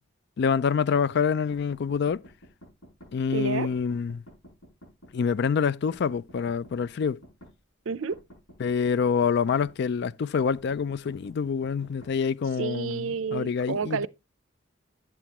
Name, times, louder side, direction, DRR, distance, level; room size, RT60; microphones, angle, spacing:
voice 1, 0.4-2.2 3.1-4.2 5.1-7.2 8.6-14.1, left 6 dB, 60° left, 0.4 m, -26 dB
sound 1, 1.5-3.1 3.7-5.3 5.9-7.5 8.1-9.7 10.5-12.1, equal, 80° left, 6.5 m, -51 dB
voice 2, 3.3-3.7 7.9-8.2 12.6-14.1, right 5 dB, 90° right, 0.5 m, -30 dB
8.8 x 7.7 x 2.9 m
head